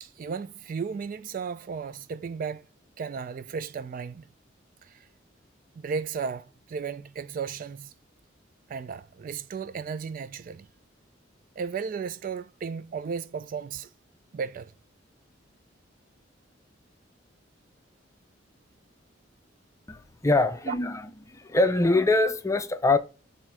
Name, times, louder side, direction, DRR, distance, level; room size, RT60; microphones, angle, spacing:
voice 1, 0.0-2.6 3.0-4.2 4.8-5.1 5.7-7.9 8.7-10.7 11.6-13.9 14.3-14.7 20.7-20.8, right 6 dB, 45° right, 0.3 m, -34 dB
voice 2, 19.9-21.0 21.3-23.0, left 2 dB, 15° left, 0.5 m, -23 dB
7.4 x 2.7 x 4.8 m
head